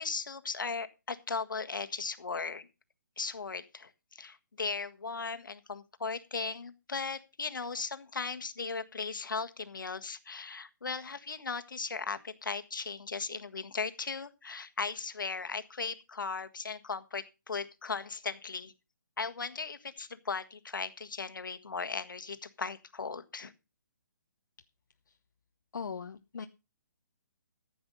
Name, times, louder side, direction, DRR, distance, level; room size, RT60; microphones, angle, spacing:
voice 1, 0.0-2.7 3.2-18.7 19.2-23.5, left 4 dB, 90° left, 10 dB, 1.6 m, -37 dB
voice 2, 25.7-26.5, left 6 dB, 70° left, 7 dB, 0.9 m, -39 dB
14.5 x 8.0 x 5.4 m, 0.29 s
hypercardioid pair, 165°, 10 cm